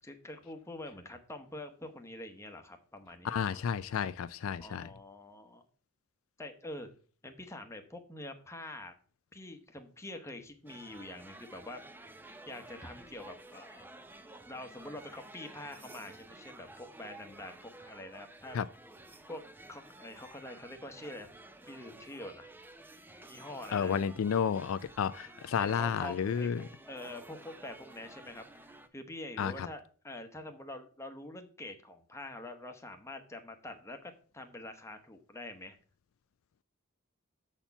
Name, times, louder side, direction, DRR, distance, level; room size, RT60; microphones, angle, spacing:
voice 1, 0.0-3.7 4.6-5.6 6.4-6.9 7.2-8.9 9.3-11.8 12.5-13.9 14.5-18.6 19.3-19.4 19.7-21.3 21.7-22.5 23.3-24.0 25.6-35.8, left 1 dB, 15° left, 0.9 m, -46 dB
voice 2, 3.2-4.9 18.5-18.7 23.7-26.6 29.4-29.7, left 7 dB, 70° left, 0.3 m, -31 dB
sound 1, 10.7-28.9, right 2 dB, 10° right, 0.5 m, -53 dB
7.1 x 4.4 x 6.8 m
head